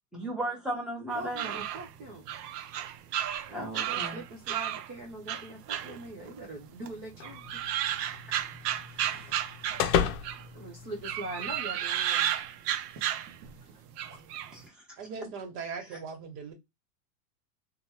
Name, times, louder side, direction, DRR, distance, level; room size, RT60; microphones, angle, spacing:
voice 1, 0.1-1.6 3.5-4.2 14.5-15.0 15.9-16.0, right 1 dB, ahead, 0.9 m, -36 dB
voice 2, 1.1-2.3 3.5-7.4 8.9-10.1 10.5-12.4 12.9-13.1 13.6-13.8 14.1-14.2, right 2 dB, 25° right, 0.3 m, -43 dB
urban fox call, 1.1-4.9 5.3-6.6 6.8-10.5 11.0-13.6 13.9-14.5, right 11 dB, 70° right, 0.7 m, -33 dB
sound 1, 7.2-11.6, left 8 dB, 50° left, 0.6 m, -34 dB
voice 3, 15.0-16.5, right 5 dB, 50° right, 1.3 m, -39 dB
2.9 x 2.3 x 2.8 m
supercardioid pair, 140°, 49 cm